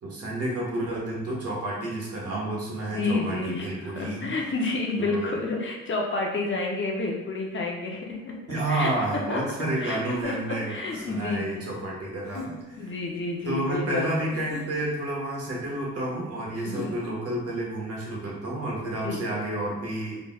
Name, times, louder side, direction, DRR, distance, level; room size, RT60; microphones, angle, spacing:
voice 1, 0.0-4.3 5.0-5.3 8.5-12.9 13.4-20.2, right 1 dB, 50° right, -4 dB, 1.4 m, -30 dB
voice 2, 2.9-8.4 8.7-8.9 9.3-9.4 9.8-11.7 12.8-14.1 16.6-17.0 19.0-19.2, left 3 dB, 40° left, 0 dB, 0.7 m, -30 dB
sound 1, 10.1-11.4 12.2-12.8 14.3-15.1 16.5-17.3, left 3 dB, 75° left, 1.1 m, -41 dB
4.0 x 3.3 x 2.3 m, 1.1 s
cardioid pair, 90°, 30 cm